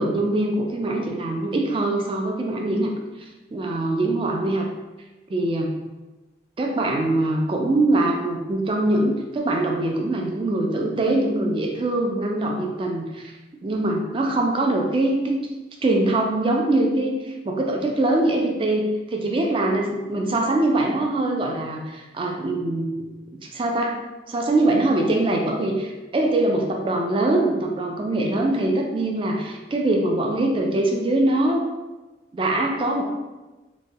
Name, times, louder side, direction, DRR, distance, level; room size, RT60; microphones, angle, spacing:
voice 1, 0.0-2.9 3.2-4.7 5.3-5.7 6.6-13.3 13.6-15.4 15.8-22.9 23.4-24.0 24.3-31.6 32.3-33.0, right 2 dB, 30° right, 1 dB, 0.3 m, -23 dB
2.9 x 2.2 x 2.6 m, 1.2 s
head